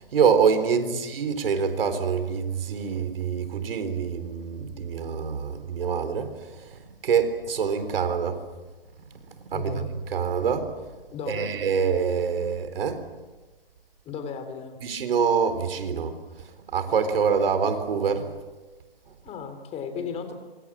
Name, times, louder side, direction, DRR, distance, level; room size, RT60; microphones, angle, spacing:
voice 1, 0.0-6.3 7.0-8.4 9.5-9.8 10.1-10.7 11.3-13.0 14.8-16.1 16.7-18.3, right 6 dB, 70° right, 10 dB, 4.0 m, -25 dB
voice 2, 9.5-9.9 11.1-11.6 14.1-14.8 19.2-20.3, left 6 dB, 20° left, 8 dB, 3.6 m, -35 dB
26.0 x 25.0 x 7.5 m, 1.2 s
hypercardioid pair, 140°, 30 cm